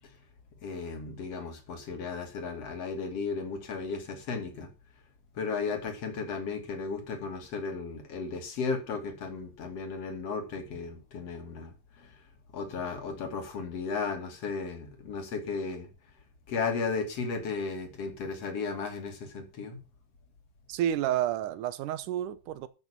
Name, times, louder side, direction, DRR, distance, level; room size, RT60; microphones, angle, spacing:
voice 1, 0.6-4.7 5.4-12.1 12.5-15.9 16.5-19.8, left 4 dB, 50° left, 3.4 m, -35 dB
voice 2, 20.7-22.7, right 11 dB, 75° right, 2.3 m, -30 dB
13.5 x 6.2 x 7.4 m
omnidirectional pair, 3.9 m